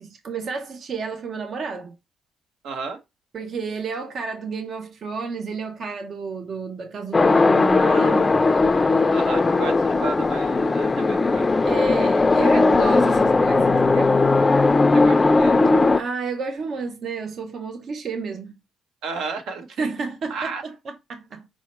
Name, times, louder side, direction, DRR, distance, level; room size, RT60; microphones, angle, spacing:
voice 1, 0.0-2.0 3.3-8.4 11.6-14.2 16.0-18.6 19.8-21.5, right 5 dB, 55° right, 0.6 m, -31 dB
voice 2, 2.6-3.0 9.1-11.5 14.9-15.6 19.0-19.9 20.3-20.6, right 5 dB, 85° right, 1.0 m, -33 dB
sound 1, 7.1-16.0, left 3 dB, 25° left, 0.4 m, -18 dB
5.5 x 2.1 x 4.1 m
cardioid pair, 90°, 0 cm